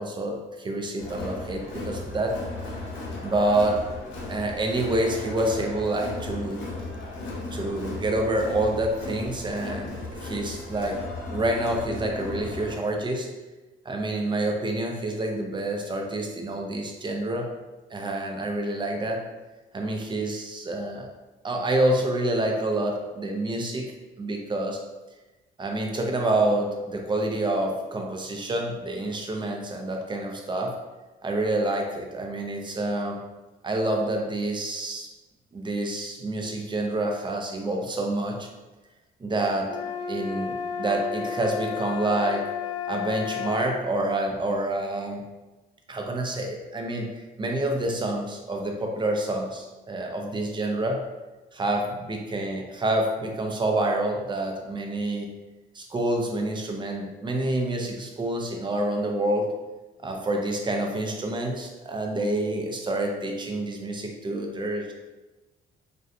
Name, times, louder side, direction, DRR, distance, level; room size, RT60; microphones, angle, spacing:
voice 1, 0.0-2.4 3.2-3.8 4.3-6.7 7.5-9.9 10.2-11.0 11.3-13.3 13.8-17.5 17.9-19.3 19.7-21.1 21.4-23.9 24.2-24.8 25.6-30.8 31.2-33.2 33.6-35.1 35.5-38.5 39.2-39.8 40.1-42.5 42.9-45.3 45.9-51.1 51.5-55.3 55.7-59.5 60.0-64.9, right 1 dB, 25° right, 2 dB, 0.4 m, -27 dB
Crowd, 1.0-12.7, left 2 dB, 75° left, 0.8 m, -36 dB
sound 1, 39.6-43.8, left 7 dB, 45° left, 0.6 m, -32 dB
2.5 x 2.2 x 2.4 m, 1.1 s
cardioid pair, 90°, 20 cm